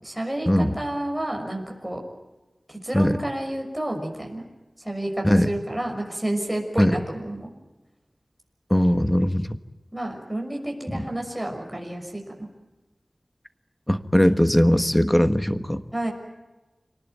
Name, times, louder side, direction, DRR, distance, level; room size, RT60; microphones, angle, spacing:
voice 1, 0.0-2.0 2.7-4.5 4.8-7.5 9.9-12.5 15.9-16.1, right 1 dB, 5° right, 2 dB, 6.2 m, -30 dB
voice 2, 8.7-9.6 10.9-11.0 13.9-15.8, equal, 10° left, 10 dB, 1.4 m, -20 dB
27.5 x 19.0 x 9.3 m, 1.1 s
wide cardioid pair, 70°, 0 cm